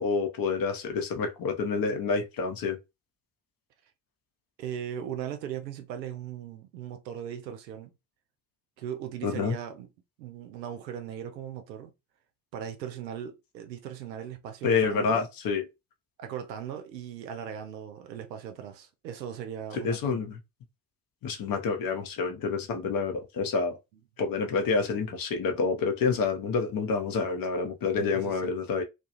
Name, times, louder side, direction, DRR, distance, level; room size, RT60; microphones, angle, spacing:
voice 1, 0.0-2.8 9.2-9.6 14.6-15.6 19.7-20.4 21.2-23.8 24.2-28.8, left 4 dB, 45° left, 0.8 m, -28 dB
voice 2, 4.6-7.9 8.8-9.9 10.2-11.9 12.5-15.2 16.2-20.3 27.9-28.5, right 9 dB, 80° right, 0.6 m, -38 dB
2.3 x 2.2 x 2.8 m
figure-of-eight pair, 45°, 50 cm